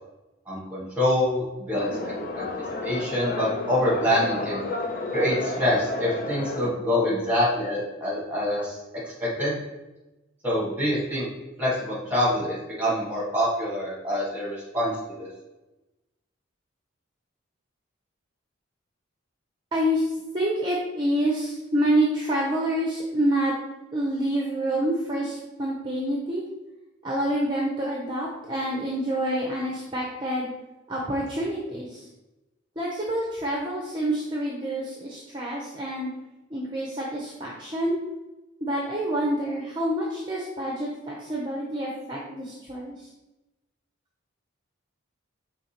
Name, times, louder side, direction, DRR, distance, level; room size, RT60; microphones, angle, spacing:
voice 1, 0.5-1.9 2.3-2.5 2.8-4.6 5.1-8.8 9.0-9.6 10.4-11.3 11.6-14.9 15.2-15.3, left 1 dB, 10° right, -6 dB, 1.5 m, -25 dB
sound 1, 1.7-6.7, left 2 dB, 45° left, 0.5 m, -31 dB
voice 2, 19.7-23.6 23.9-26.4 27.0-30.5 30.9-32.1 32.8-36.1 36.5-38.0 38.6-43.1, right 1 dB, 25° right, -3 dB, 0.5 m, -27 dB
5.1 x 3.1 x 2.9 m, 1.0 s
head